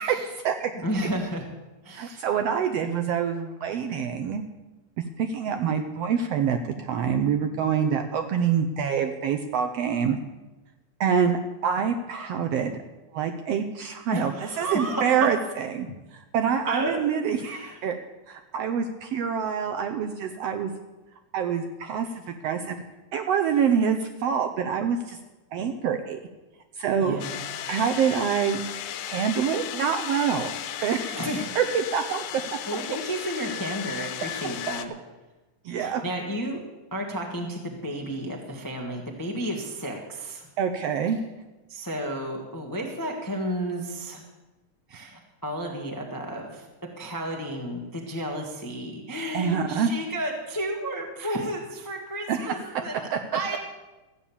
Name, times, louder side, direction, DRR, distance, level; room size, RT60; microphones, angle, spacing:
voice 1, 0.8-1.4 1.8-2.2 14.1-15.3 16.7-17.0 17.4-17.8 27.0-27.4 31.1-31.5 32.6-34.9 35.8-36.6 36.9-40.4 41.7-44.2 44.9-46.7 47.0-52.9 53.3-53.6, right 1 dB, 15° left, 1 dB, 0.6 m, -32 dB
voice 2, 1.9-4.4 5.2-10.2 11.0-12.7 13.1-15.9 16.3-18.0 18.3-20.7 21.3-22.8 23.1-25.2 25.5-26.2 26.8-27.2 27.7-28.6 29.1-30.5 30.8-31.2 31.6-32.4 35.6-36.0 40.6-41.2 49.3-49.9 52.3-52.5 53.1-53.2, right 7 dB, 75° right, 7 dB, 1.5 m, -26 dB
sound 1, 27.2-34.9, left 11 dB, 85° left, 2.3 m, -35 dB
14.5 x 8.8 x 7.1 m, 1.1 s
omnidirectional pair, 3.5 m